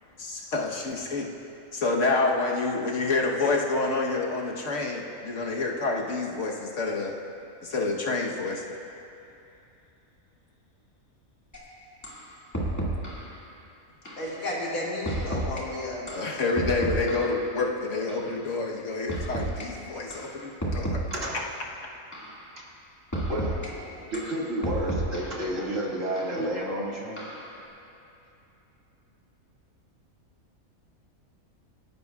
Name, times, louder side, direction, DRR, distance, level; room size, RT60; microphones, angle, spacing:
voice 1, 0.2-1.3 1.7-7.1 7.6-8.6 16.1-21.0, left 3 dB, 60° left, -1 dB, 1.4 m, -28 dB
sound 1, 11.5-11.6 12.0-12.2 12.5-13.3 14.1-14.3 15.1-15.6 16.1-17.4 18.1-18.3 19.1-19.7 20.1-20.3 20.6-21.4 22.1-22.4 23.1-23.7 24.1-25.4 26.2-26.3 27.2-27.5, right 1 dB, 10° left, 2.0 m, -31 dB
voice 2, 14.2-16.3, left 1 dB, 90° left, -6 dB, 2.7 m, -33 dB
voice 3, 23.3-27.3, right 1 dB, 65° right, -4 dB, 2.5 m, -31 dB
27.0 x 11.0 x 2.4 m, 2.8 s
omnidirectional pair, 1.5 m